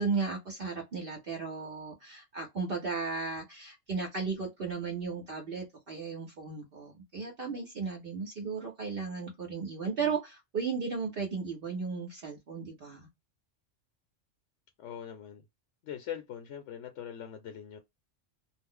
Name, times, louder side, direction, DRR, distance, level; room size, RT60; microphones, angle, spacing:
voice 1, 0.0-13.1, right 5 dB, 55° right, 0.9 m, -35 dB
voice 2, 14.8-15.4 15.8-17.8, left 9 dB, 80° left, 1.0 m, -42 dB
2.4 x 2.1 x 3.6 m
omnidirectional pair, 1.2 m